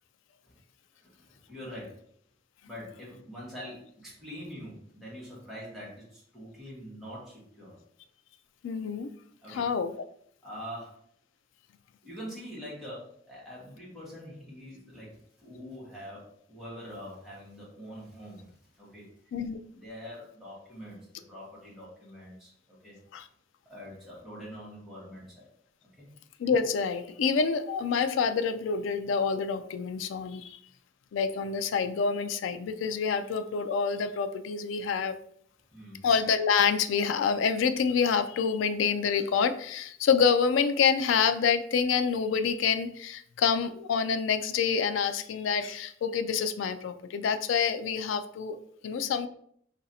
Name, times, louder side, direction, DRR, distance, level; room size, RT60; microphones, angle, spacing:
voice 1, 1.0-2.0 2.7-7.8 9.4-9.6 10.4-11.0 12.0-19.3 19.7-21.0 21.3-23.0 23.6-25.5 25.8-26.1 35.7-36.0, equal, ahead, -8 dB, 1.4 m, -44 dB
voice 2, 8.6-9.1 9.5-9.9 19.3-19.6 23.1-23.3 26.4-30.6 31.1-35.2 36.0-48.6 48.8-49.3, left 6 dB, 85° left, 10 dB, 0.3 m, -27 dB
3.1 x 2.6 x 4.1 m, 0.66 s
head